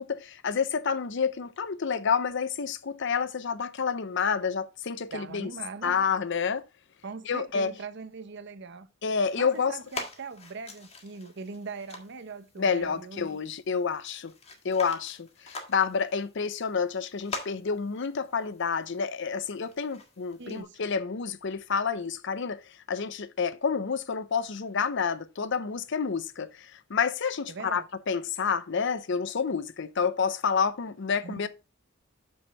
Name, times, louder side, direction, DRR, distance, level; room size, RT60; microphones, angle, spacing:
voice 1, 0.0-5.5 5.8-6.6 7.3-7.7 9.0-9.8 12.6-14.3 14.6-22.6 22.9-31.5, left 6 dB, 65° left, 0.6 m, -29 dB
voice 2, 5.1-6.0 7.0-8.9 9.4-13.3 20.4-20.8 27.5-27.9 31.2-31.5, right 4 dB, 60° right, 0.8 m, -41 dB
sound 1, 9.0-20.6, left 3 dB, 30° left, 1.7 m, -45 dB
6.4 x 6.2 x 4.4 m
head